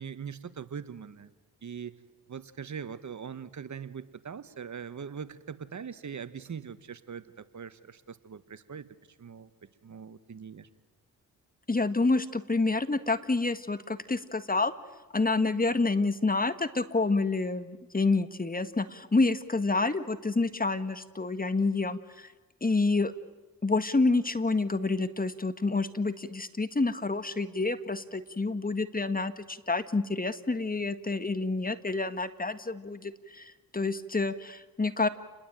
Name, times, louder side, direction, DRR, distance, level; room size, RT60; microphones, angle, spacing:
voice 1, 0.0-1.3 1.6-1.9 2.3-8.9 9.2-9.5 9.8-10.7, right 7 dB, 50° right, 13 dB, 1.6 m, -41 dB
voice 2, 11.7-14.7 15.1-22.3 22.6-23.1 23.6-35.1, left 3 dB, 20° left, 12 dB, 1.8 m, -28 dB
29.5 x 21.5 x 9.2 m, 1.2 s
supercardioid pair, 60°, 38 cm